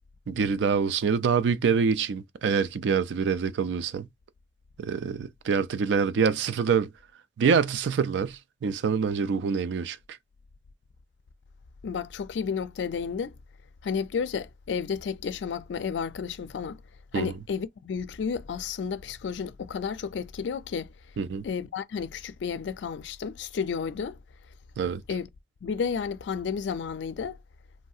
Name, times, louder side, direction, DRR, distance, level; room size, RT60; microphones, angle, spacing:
voice 1, 0.3-4.1 4.8-6.9 7.4-10.0 17.1-17.3 21.2-21.4 24.8-25.0, right 6 dB, 85° right, 0.4 m, -25 dB
voice 2, 11.8-13.3 13.8-16.8 17.1-20.9 21.4-24.2 25.1-25.3 25.6-27.4, left 6 dB, 85° left, 0.4 m, -32 dB
3.1 x 2.7 x 2.4 m
head